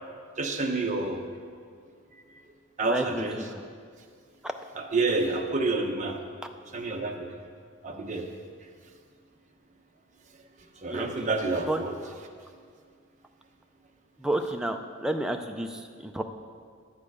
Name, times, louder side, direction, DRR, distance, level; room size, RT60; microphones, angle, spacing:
voice 1, 0.4-1.2 2.1-2.4 2.8-3.4 4.7-6.2 6.7-7.3 7.8-8.2 10.6-12.0, right 3 dB, 35° right, 2 dB, 0.9 m, -29 dB
voice 2, 2.8-3.4 4.4-4.5 10.9-11.1 11.7-11.8 14.2-16.2, right 1 dB, 5° right, 5 dB, 0.4 m, -30 dB
10.5 x 8.8 x 4.9 m, 2.1 s
head